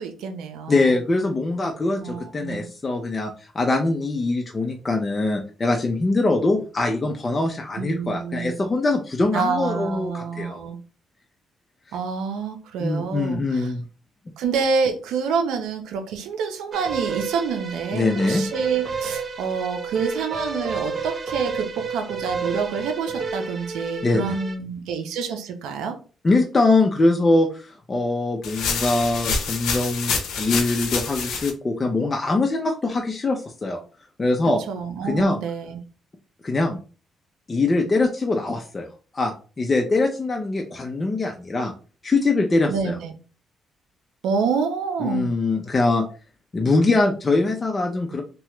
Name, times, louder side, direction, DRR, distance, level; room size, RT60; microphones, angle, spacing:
voice 1, 0.0-0.9 2.0-2.6 7.8-8.5 9.3-10.8 11.9-13.7 14.4-26.0 34.7-35.8 42.7-43.1 44.2-45.3, right 5 dB, 90° right, 6 dB, 0.5 m, -27 dB
voice 2, 0.7-10.6 11.9-12.0 12.8-13.8 17.9-18.4 24.0-24.4 26.2-33.8 34.2-34.6 35.0-35.4 36.4-36.8 37.5-38.9 39.1-41.7 42.0-43.0 45.0-46.0 46.5-48.2, left 2 dB, 30° left, 2 dB, 0.5 m, -22 dB
sound 1, 16.7-24.6, right 5 dB, 45° right, 0.6 m, -31 dB
sound 2, 28.4-31.5, left 5 dB, 80° left, 0.6 m, -27 dB
2.8 x 2.2 x 3.1 m, 0.36 s
cardioid pair, 90°, 0 cm